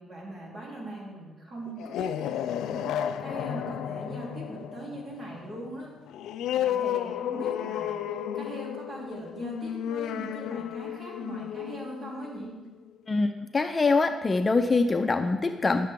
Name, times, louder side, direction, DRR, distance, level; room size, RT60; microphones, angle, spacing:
voice 1, 0.0-5.9 6.5-12.5, right 1 dB, 45° right, -4 dB, 3.4 m, -40 dB
sound 1, 1.7-12.9, left 10 dB, 85° left, 0.3 m, -33 dB
voice 2, 13.1-15.9, left 3 dB, 30° left, 7 dB, 0.5 m, -24 dB
11.5 x 6.7 x 3.7 m, 1.3 s
cardioid pair, 90°, 0 cm